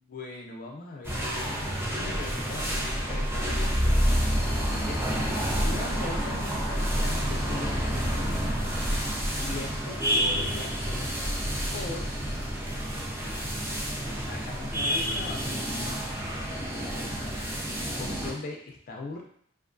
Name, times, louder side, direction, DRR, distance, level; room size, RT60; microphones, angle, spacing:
voice 1, 0.0-3.7 4.6-5.0 5.6-8.7 9.4-11.1 11.7-12.1 14.1-15.6 16.9-17.4 18.0-19.2, left 3 dB, 45° left, 0 dB, 0.4 m, -40 dB
sound 1, 1.0-18.3, equal, 10° right, 0.5 m, -29 dB
2.4 x 2.2 x 2.5 m, 0.65 s
head